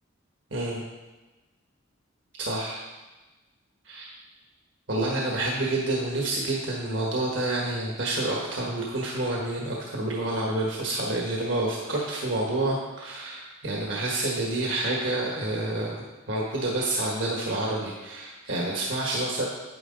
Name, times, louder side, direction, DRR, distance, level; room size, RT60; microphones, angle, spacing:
voice 1, 0.5-0.8 2.4-2.8 3.8-4.1 4.9-19.5, right 2 dB, 65° right, -3 dB, 1.4 m, -28 dB
9.5 x 9.4 x 3.9 m, 1.2 s
head